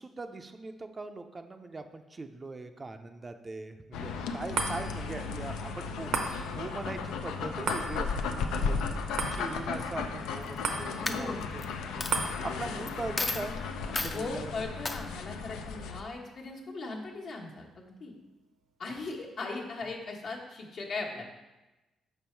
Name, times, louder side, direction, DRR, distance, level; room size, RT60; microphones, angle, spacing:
voice 1, 0.0-8.8 9.3-13.6 14.0-14.7, right 3 dB, 30° right, 7 dB, 0.4 m, -41 dB
sound 1, 3.9-16.0, left 5 dB, 90° left, 0.5 m, -35 dB
sound 2, 4.5-17.1 17.6-17.7, right 4 dB, 80° right, 0.8 m, -39 dB
voice 2, 8.4-8.9 10.9-11.4 14.1-18.1 18.8-21.2, left 3 dB, 60° left, -1 dB, 1.3 m, -38 dB
Coin (dropping), 10.4-10.7 11.1-11.7 12.0-12.1 12.9-13.0 13.2-13.5 13.9-14.2 14.8-15.0, left 2 dB, 25° left, 0.5 m, -32 dB
5.7 x 5.4 x 4.4 m, 1.1 s
cardioid pair, 90°, 0 cm